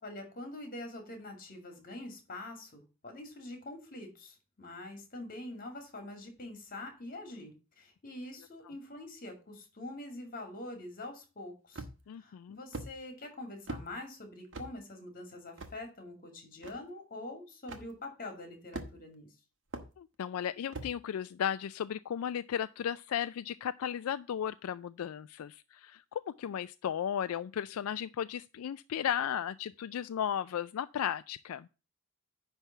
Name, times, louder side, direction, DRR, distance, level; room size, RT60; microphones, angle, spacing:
voice 1, 0.0-11.8 12.2-19.3, left 2 dB, 40° left, 2.4 m, -45 dB
sound 1, 11.7-12.1 12.7-12.9 13.7-13.9 14.5-14.7 15.6-15.7 16.6-16.7 17.7-17.9 18.7-19.1 19.7-19.9 20.7-20.9, right 2 dB, 60° right, 1.4 m, -41 dB
voice 2, 12.1-12.6 20.0-31.7, left 9 dB, 80° left, 0.3 m, -35 dB
10.0 x 3.4 x 6.9 m
head